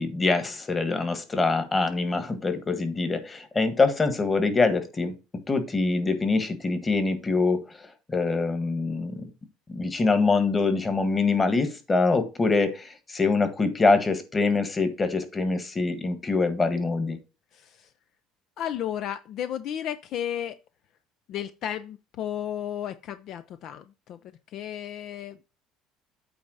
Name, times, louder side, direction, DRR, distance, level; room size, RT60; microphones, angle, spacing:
voice 1, 0.0-5.1 5.5-7.6 8.1-9.3 9.7-17.2, left 3 dB, 20° left, 1.6 m, -24 dB
voice 2, 17.5-17.9 18.6-20.6 21.3-24.2 24.5-25.4, left 10 dB, 60° left, 0.5 m, -33 dB
8.6 x 3.4 x 6.4 m
cardioid pair, 115°, 0 cm